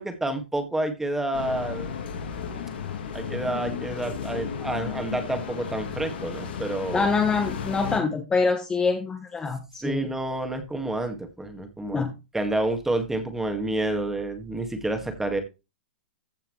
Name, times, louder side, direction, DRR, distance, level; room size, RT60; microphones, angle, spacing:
voice 1, 0.0-1.9 2.2-2.3 3.1-7.1 9.8-12.1 12.3-15.4, right 2 dB, 5° right, 6 dB, 1.9 m, -29 dB
sound 1, 1.3-8.0, left 7 dB, 70° left, 2.6 m, -34 dB
voice 2, 6.9-10.1 11.9-12.1, left 4 dB, 15° left, 6 dB, 1.1 m, -25 dB
15.0 x 5.6 x 3.2 m, 0.26 s
hypercardioid pair, 125°, 6 cm